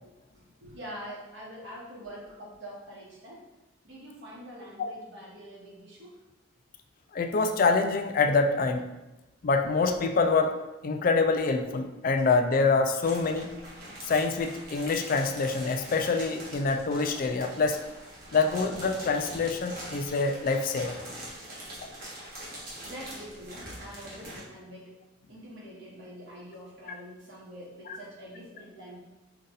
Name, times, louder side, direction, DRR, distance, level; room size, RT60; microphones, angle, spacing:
voice 1, 0.3-3.4 3.8-6.2 21.5-21.7 22.8-24.9 25.3-29.0, equal, 65° right, -5 dB, 1.6 m, -45 dB
voice 2, 7.1-8.8 9.4-10.5 10.8-13.5 14.1-17.8 18.3-21.0, left 4 dB, 45° left, 5 dB, 0.4 m, -25 dB
sound 1, 13.0-24.4, right 1 dB, 50° right, 1.4 m, -43 dB
5.2 x 2.5 x 4.0 m, 1.0 s
head